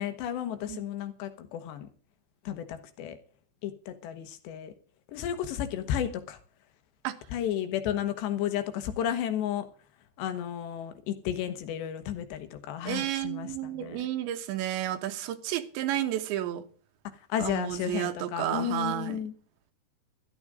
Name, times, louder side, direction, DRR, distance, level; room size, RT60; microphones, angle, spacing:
voice 1, 0.0-1.9 2.5-3.2 3.6-4.7 5.1-6.4 7.3-9.7 10.2-14.0 17.3-19.3, left 10 dB, 75° left, 3.5 m, -33 dB
voice 2, 12.8-16.7 17.4-19.2, right 12 dB, 85° right, 3.6 m, -31 dB
13.5 x 12.0 x 5.0 m
omnidirectional pair, 5.0 m